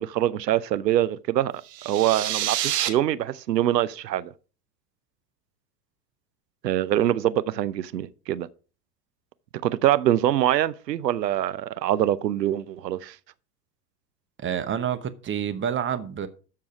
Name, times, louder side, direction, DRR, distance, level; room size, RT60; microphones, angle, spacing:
voice 1, 0.0-1.5 1.8-4.3 6.6-8.5 9.6-13.2, right 12 dB, 80° right, 0.8 m, -24 dB
sound 1, 1.6-2.9, right 12 dB, 45° right, 1.5 m, -27 dB
voice 2, 14.4-16.3, right 8 dB, 25° right, 1.0 m, -28 dB
13.0 x 4.8 x 4.9 m
hypercardioid pair, 85°, 49 cm